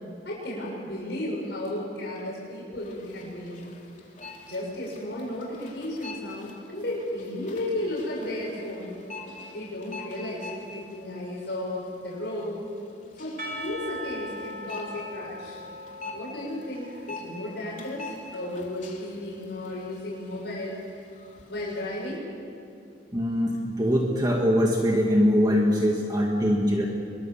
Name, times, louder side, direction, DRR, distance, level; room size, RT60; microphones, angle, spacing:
voice 1, 0.2-3.6 4.5-8.9 9.5-12.6 13.1-15.6 16.1-20.8 21.5-22.3, left 1 dB, 70° left, -4 dB, 6.5 m, -34 dB
sound 1, 2.8-22.2, left 3 dB, 45° left, 3.1 m, -46 dB
Percussion / Church bell, 13.4-18.4, equal, 55° right, 3.2 m, -40 dB
voice 2, 23.1-26.9, equal, 25° right, 0 dB, 1.9 m, -22 dB
24.5 x 23.5 x 7.2 m, 2.5 s
head